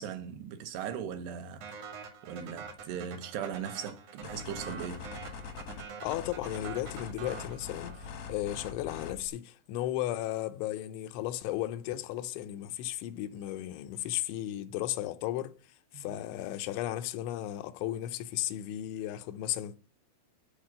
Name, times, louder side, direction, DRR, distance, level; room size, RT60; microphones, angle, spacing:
voice 1, 0.0-1.7 2.2-5.1 15.9-16.2, right 8 dB, 75° right, 2.8 m, -39 dB
sound 1, 1.6-8.3, right 6 dB, 55° right, 1.8 m, -45 dB
sound 2, 4.2-9.3, left 5 dB, 70° left, 1.6 m, -43 dB
voice 2, 6.0-19.8, left 14 dB, 90° left, 3.1 m, -35 dB
10.5 x 4.4 x 7.5 m
omnidirectional pair, 5.2 m